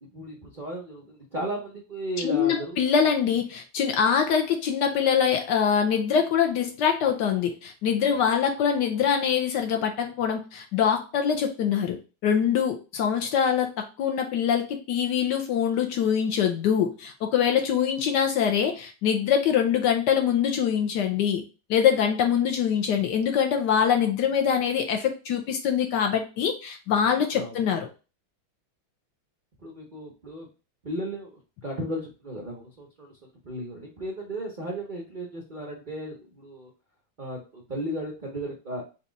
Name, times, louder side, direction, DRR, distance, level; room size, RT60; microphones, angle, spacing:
voice 1, 0.0-2.8 27.3-27.5 29.6-30.5 30.8-36.7 37.2-38.8, right 1 dB, 70° right, -1 dB, 0.4 m, -35 dB
voice 2, 2.2-21.4 21.7-27.9, left 8 dB, 70° left, 4 dB, 1.1 m, -24 dB
4.1 x 2.3 x 3.8 m, 0.32 s
omnidirectional pair, 2.2 m